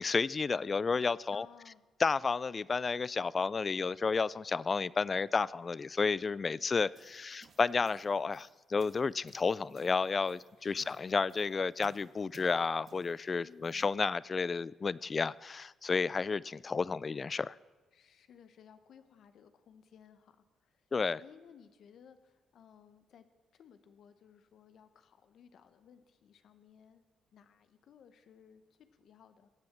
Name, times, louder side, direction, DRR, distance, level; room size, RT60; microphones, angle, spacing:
voice 1, 0.0-1.5 2.0-17.5 20.9-21.2, left 4 dB, 35° left, 22 dB, 0.3 m, -31 dB
voice 2, 1.3-1.8 10.6-11.0 13.4-13.9 17.9-20.9 21.2-23.2 23.5-27.0 27.3-29.5, left 8 dB, 65° left, 10 dB, 0.9 m, -59 dB
sound 1, 6.7-14.0, right 5 dB, 55° right, 1.6 m, -63 dB
16.5 x 7.8 x 7.2 m, 1.2 s
cardioid pair, 90°, 0 cm